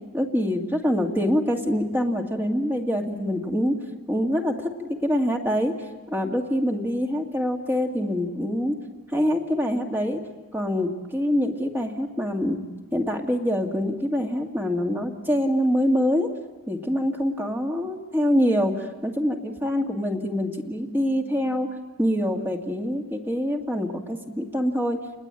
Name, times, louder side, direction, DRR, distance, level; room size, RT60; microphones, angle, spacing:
voice 1, 0.1-3.8 4.1-5.7 6.1-8.7 9.1-10.2 10.5-12.6 12.9-16.3 16.7-21.7 22.0-25.0, equal, 10° right, 2 dB, 2.1 m, -25 dB
29.5 x 20.5 x 9.0 m, 1.2 s
head